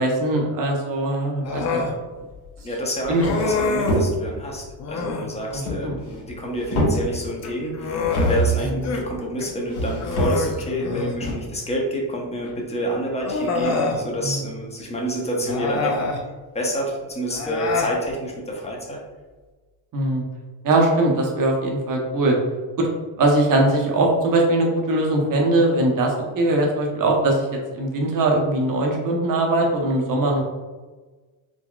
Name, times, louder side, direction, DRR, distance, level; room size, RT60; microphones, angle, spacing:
voice 1, 0.0-1.6 3.1-3.2 5.5-6.0 8.6-8.8 14.2-14.4 19.9-20.2 20.6-22.4 22.8-22.9 23.2-27.5 27.7-30.4, right 2 dB, 45° right, 0 dB, 0.8 m, -21 dB
Human voice, 1.4-2.0 3.2-4.1 4.8-5.3 7.3-9.0 9.4-9.5 10.0-11.2 12.4-12.5 13.2-14.0 15.4-16.2 17.3-17.9, left 3 dB, 40° left, 0.5 m, -26 dB
sound 1, 2.6-2.7 3.0-4.5 5.5-6.3 6.6-7.4 8.0-8.7 9.7-10.6 11.2-11.3, right 1 dB, 70° left, 1.5 m, -25 dB
voice 2, 2.6-16.0 16.5-19.0, equal, 15° left, -2 dB, 0.8 m, -28 dB
3.8 x 2.1 x 2.3 m, 1.3 s
supercardioid pair, 85°, 44 cm